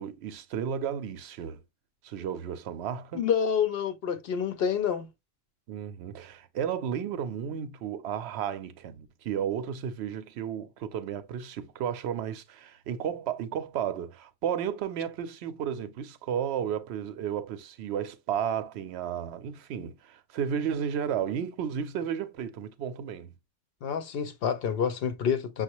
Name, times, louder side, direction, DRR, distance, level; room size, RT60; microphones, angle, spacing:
voice 1, 0.0-1.6 2.0-3.3 5.7-23.3, right 8 dB, 65° right, 0.8 m, -33 dB
voice 2, 3.1-5.1 23.8-25.6, left 7 dB, 60° left, 0.7 m, -28 dB
6.1 x 2.3 x 2.9 m
omnidirectional pair, 1.3 m